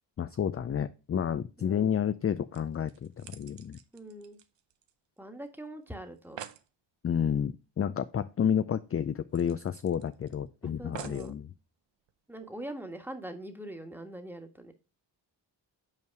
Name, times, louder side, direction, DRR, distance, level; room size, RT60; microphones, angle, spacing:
voice 1, 0.2-3.8 7.0-11.5, left 8 dB, 35° left, 12 dB, 0.4 m, -30 dB
voice 2, 1.6-2.0 3.9-4.4 5.2-6.4 10.6-11.3 12.3-14.7, right 1 dB, 5° right, 6 dB, 1.4 m, -43 dB
sound 1, 2.2-2.3 2.5-5.2 5.5-5.6 5.9-6.0 6.2-6.7 8.2-8.3 8.6-8.7 9.3-10.3 10.9-11.4 12.1-12.2, right 10 dB, 75° right, 0.7 m, -47 dB
5.8 x 4.6 x 4.7 m, 0.31 s
cardioid pair, 50°, 45 cm